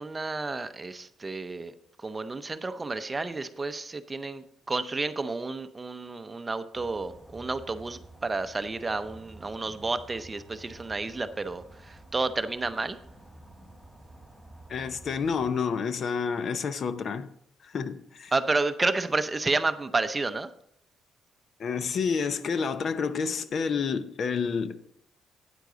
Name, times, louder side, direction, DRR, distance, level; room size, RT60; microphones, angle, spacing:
voice 1, 0.0-1.7 2.0-11.6 12.1-13.0 18.3-20.5, right 3 dB, 25° right, 0.6 m, -30 dB
sound 1, 6.7-15.5, right 1 dB, ahead, 4.3 m, -50 dB
voice 2, 14.7-17.3 17.6-18.3 21.6-24.8, left 5 dB, 55° left, 0.7 m, -29 dB
9.2 x 8.1 x 3.9 m
cardioid pair, 90°, 0 cm